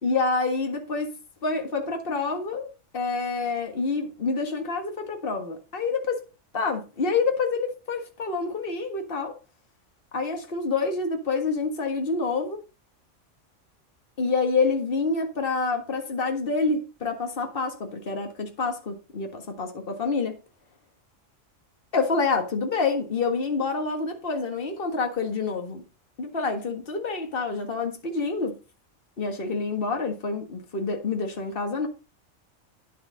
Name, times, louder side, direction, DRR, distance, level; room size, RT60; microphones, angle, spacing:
voice 1, 0.0-6.2 6.5-9.4 10.1-12.6 14.2-20.4 21.9-25.8 26.2-28.5 29.2-31.9, left 4 dB, 45° left, 1.8 m, -27 dB
10.0 x 7.3 x 4.0 m
omnidirectional pair, 1.3 m